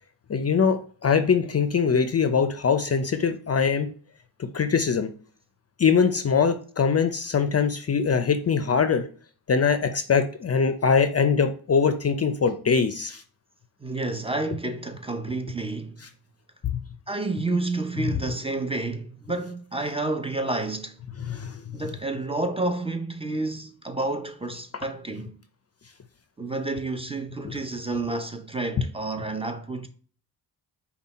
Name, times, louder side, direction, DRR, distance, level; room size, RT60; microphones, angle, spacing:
voice 1, 0.3-3.9 4.4-5.1 5.8-9.0 9.5-13.2 21.3-21.6 27.4-27.5, left 6 dB, 35° left, 0.5 m, -22 dB
voice 2, 13.8-16.0 17.1-21.0 21.7-25.4 26.4-29.9, right 2 dB, 15° right, 0.6 m, -30 dB
5.5 x 2.3 x 4.1 m
cardioid pair, 85°, 43 cm